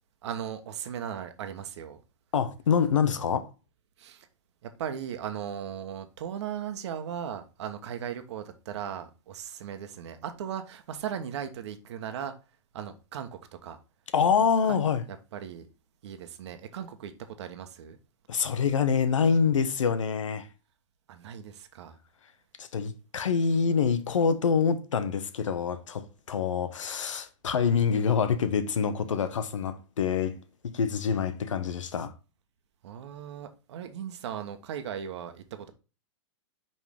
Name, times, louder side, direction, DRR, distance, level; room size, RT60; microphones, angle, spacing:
voice 1, 0.2-2.0 4.0-4.3 4.6-12.3 12.7-13.8 14.7-14.8 15.1-15.7 16.0-18.0 21.1-22.0 32.8-35.7, right 9 dB, 65° right, 1.2 m, -37 dB
voice 2, 2.3-3.5 14.1-15.0 18.3-20.5 22.6-30.4 30.7-32.1, left 6 dB, 85° left, 1.1 m, -26 dB
5.4 x 5.3 x 3.5 m
hypercardioid pair, 130°, 16 cm